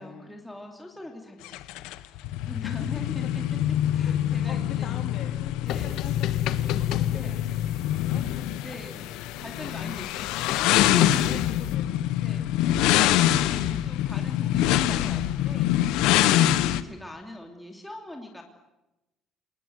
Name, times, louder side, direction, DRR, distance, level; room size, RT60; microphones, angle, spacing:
voice 1, 0.0-3.6 3.9-5.1 5.6-6.0 7.1-7.4 8.6-9.1 9.4-11.4 12.2-18.4, left 1 dB, 5° left, 1 dB, 2.9 m, -42 dB
sound 1, 1.5-16.8, left 13 dB, 90° left, 1.3 m, -25 dB
voice 2, 4.0-6.9 7.3-9.1 11.2-12.7 16.3-16.4, left 8 dB, 50° left, 5 dB, 3.8 m, -43 dB
sound 2, 5.7-11.7, left 12 dB, 65° left, 1.4 m, -33 dB
28.0 x 20.0 x 9.4 m, 0.97 s
cardioid pair, 165°, 0 cm